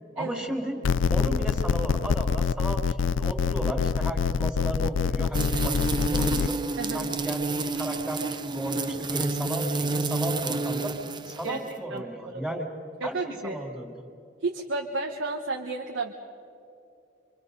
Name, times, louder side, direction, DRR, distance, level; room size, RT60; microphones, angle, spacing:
voice 1, 0.2-0.8 1.1-6.6 6.9-10.9 11.2-12.7 13.0-13.9, right 1 dB, 5° right, 2 dB, 2.7 m, -34 dB
sound 1, 0.8-6.5, left 5 dB, 75° left, 0.4 m, -25 dB
sound 2, 5.3-11.7, right 3 dB, 25° right, 0.7 m, -29 dB
voice 2, 6.8-7.1 11.4-11.6 11.9-12.1 12.3-12.6 13.0-13.6 14.4-16.1, right 3 dB, 75° right, 2 dB, 1.2 m, -32 dB
26.0 x 25.5 x 5.4 m, 2.7 s
head